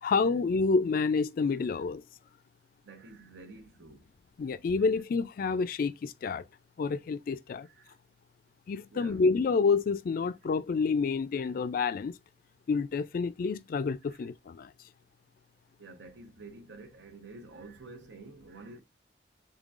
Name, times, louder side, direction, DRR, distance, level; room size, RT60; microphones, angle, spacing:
voice 1, 0.0-2.0 4.4-6.4 6.8-7.7 8.7-12.1 12.7-14.7, left 4 dB, 50° left, 0.3 m, -28 dB
voice 2, 2.8-4.1 7.6-8.0 8.9-9.2 11.3-11.7 14.1-14.3 15.8-18.8, right 3 dB, 80° right, 0.8 m, -49 dB
3.7 x 3.6 x 2.4 m
head